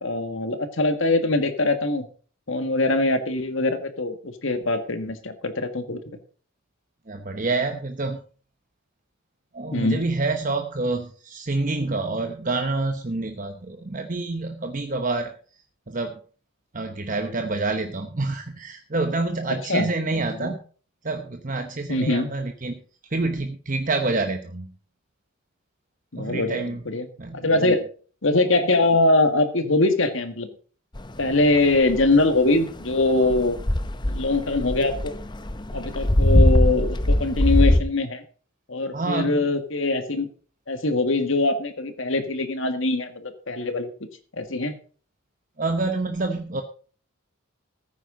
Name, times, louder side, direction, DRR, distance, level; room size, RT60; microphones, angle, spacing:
voice 1, 0.0-2.1 2.5-6.0 9.7-10.0 19.7-20.6 21.9-22.3 26.1-27.1 27.3-27.8 28.2-30.5 31.2-33.6 34.1-35.1 35.7-38.2 38.7-40.3 40.7-43.9 44.3-44.8, left 2 dB, 65° left, 8 dB, 1.8 m, -23 dB
voice 2, 7.1-8.2 9.5-15.3 15.9-16.2 16.7-20.6 21.0-22.8 23.1-24.7 26.2-26.8 27.2-27.7 38.9-39.4 45.6-46.6, right 3 dB, 40° right, 6 dB, 1.0 m, -27 dB
Walking Water, 31.0-37.8, left 1 dB, 20° left, 0.7 m, -21 dB
15.0 x 9.4 x 3.9 m, 0.40 s
head